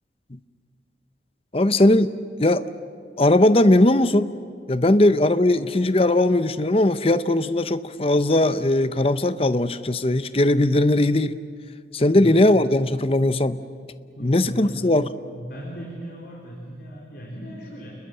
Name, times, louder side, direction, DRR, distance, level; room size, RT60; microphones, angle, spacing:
voice 1, 1.5-2.1 2.4-2.6 3.2-4.3 4.7-11.4 11.9-13.6 14.2-15.1, left 1 dB, 30° left, 13 dB, 0.8 m, -19 dB
voice 2, 12.0-12.3 14.1-14.9 15.3-18.0, equal, 55° left, -2 dB, 4.2 m, -37 dB
30.0 x 21.5 x 7.9 m, 2.3 s
head